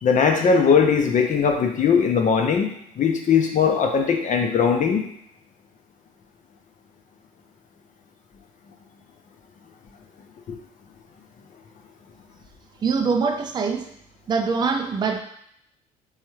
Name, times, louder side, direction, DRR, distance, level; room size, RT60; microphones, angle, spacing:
voice 1, 0.0-5.1, left 6 dB, 40° left, 3 dB, 0.7 m, -20 dB
voice 2, 12.8-13.9 14.3-15.2, right 5 dB, 20° right, 5 dB, 0.4 m, -23 dB
3.5 x 3.1 x 3.1 m, 0.71 s
hypercardioid pair, 55°, 19 cm